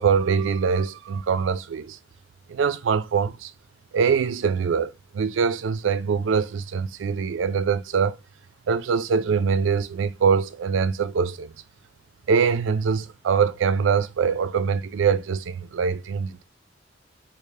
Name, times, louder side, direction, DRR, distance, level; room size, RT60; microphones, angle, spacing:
voice 1, 0.0-2.0 2.5-3.5 3.9-8.2 8.7-11.5 12.3-16.4, right 6 dB, 80° right, 0.4 m, -23 dB
3.5 x 2.4 x 3.2 m
head